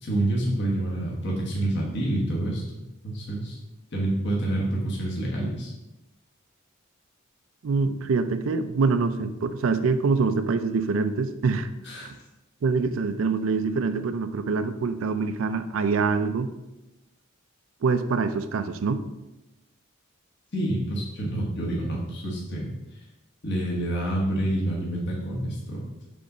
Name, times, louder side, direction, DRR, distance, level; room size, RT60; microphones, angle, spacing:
voice 1, 0.0-2.6 3.0-3.6 3.9-5.7 11.8-12.1 20.5-22.7 23.4-26.0, right 1 dB, 55° left, -4 dB, 1.3 m, -27 dB
voice 2, 7.6-11.7 12.6-16.5 17.8-19.0, right 4 dB, 75° right, 10 dB, 0.4 m, -25 dB
5.3 x 3.8 x 5.5 m, 0.98 s
head